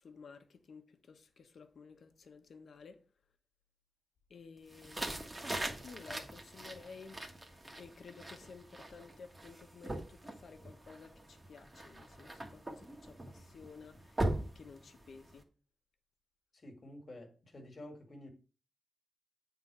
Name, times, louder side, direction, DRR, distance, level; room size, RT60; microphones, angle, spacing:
voice 1, 0.0-3.0 4.3-5.4 5.8-7.2 7.8-15.4, left 5 dB, 70° left, 1.1 m, -54 dB
sound 1, 4.7-15.4, right 1 dB, 20° right, 1.3 m, -42 dB
voice 2, 16.5-18.3, left 1 dB, 40° left, 1.9 m, -50 dB
9.0 x 3.9 x 6.0 m
wide cardioid pair, 140°, 0 cm